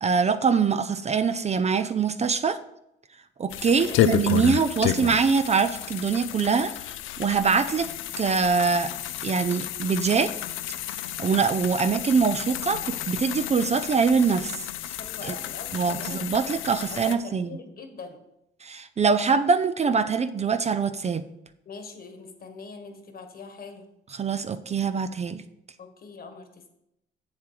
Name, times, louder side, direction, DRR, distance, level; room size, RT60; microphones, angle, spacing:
voice 1, 0.0-2.6 3.4-6.9 7.2-7.9 8.2-8.9 9.2-10.3 11.2-14.7 15.2-15.3 15.7-17.6 18.6-21.2 24.1-25.4, right 5 dB, 35° right, 11 dB, 0.5 m, -23 dB
sound 1, 3.5-17.2, left 12 dB, 85° left, 0.5 m, -31 dB
voice 2, 3.7-4.1 15.0-16.3 16.9-18.2 21.6-23.9 25.8-26.7, left 4 dB, 50° left, 6 dB, 1.5 m, -42 dB
7.4 x 7.2 x 4.8 m, 0.82 s
cardioid pair, 90°, 20 cm